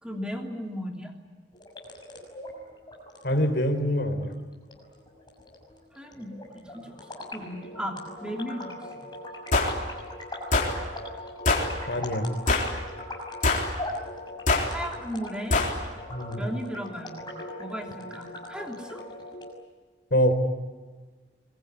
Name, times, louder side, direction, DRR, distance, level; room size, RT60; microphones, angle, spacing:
voice 1, 0.0-1.1 5.9-6.9 7.3-8.7 14.7-15.6 16.4-17.2 17.6-19.0, equal, 5° right, 2 dB, 3.1 m, -36 dB
sound 1, 1.5-19.5, left 1 dB, 25° left, 6.1 m, -40 dB
voice 2, 3.2-4.3 11.9-12.3 16.1-16.4 20.1-20.3, equal, 60° left, 6 dB, 4.0 m, -24 dB
sound 2, 9.5-9.7 10.5-10.7 11.5-11.7 12.5-12.8 13.4-13.7 14.5-14.7 15.5-15.7, left 3 dB, 45° left, 3.9 m, -23 dB
24.0 x 22.0 x 9.9 m, 1.3 s
head